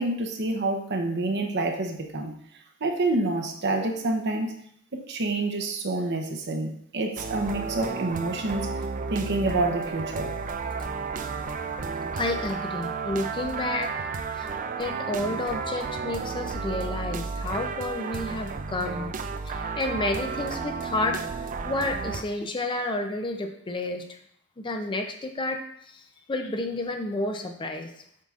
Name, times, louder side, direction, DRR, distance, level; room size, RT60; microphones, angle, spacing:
voice 1, 0.0-2.3 2.8-4.6 4.9-8.8 9.1-10.3, right 2 dB, 55° right, 4 dB, 0.8 m, -28 dB
sound 1, 7.2-22.2, right 4 dB, 40° right, 0.4 m, -32 dB
voice 2, 12.1-13.9 14.4-14.5 14.8-19.1 19.5-24.2 24.6-25.6 25.8-27.9, left 2 dB, 25° left, 5 dB, 0.5 m, -30 dB
7.4 x 5.6 x 2.4 m, 0.70 s
head